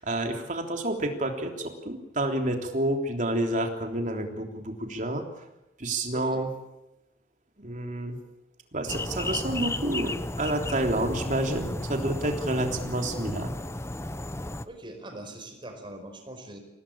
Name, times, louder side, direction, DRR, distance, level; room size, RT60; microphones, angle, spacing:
voice 1, 0.0-5.2 5.8-6.5 7.6-8.2 8.7-13.5, right 1 dB, 45° right, 4 dB, 3.4 m, -29 dB
voice 2, 6.1-6.5 14.6-16.6, right 1 dB, 30° right, 4 dB, 5.1 m, -42 dB
sound 1, 8.9-14.7, left 1 dB, 15° left, 0.8 m, -33 dB
25.5 x 18.0 x 8.8 m, 0.92 s
head